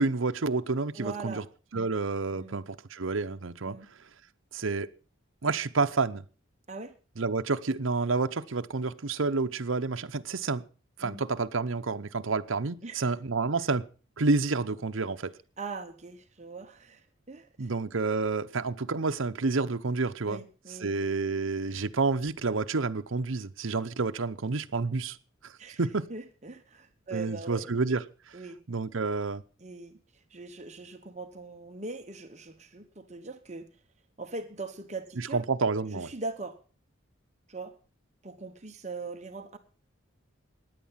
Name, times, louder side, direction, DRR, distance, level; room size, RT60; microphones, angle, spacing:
voice 1, 0.0-1.4 1.7-3.8 4.5-4.9 5.4-6.2 7.2-10.6 11.0-13.9 14.2-15.3 17.6-20.4 20.8-25.2 25.4-26.1 27.1-28.4 28.7-29.4 35.2-36.1, right 3 dB, 75° right, 0.8 m, -29 dB
voice 2, 0.9-1.5 2.3-2.5 3.7-3.9 6.7-6.9 11.0-11.2 12.8-13.1 15.6-17.7 20.3-21.0 25.6-25.8 26.1-28.0 28.3-28.6 29.6-33.7 34.2-35.4 35.9-36.6 37.5-37.8 38.2-39.6, right 3 dB, 35° right, 1.0 m, -41 dB
16.0 x 10.5 x 5.7 m
head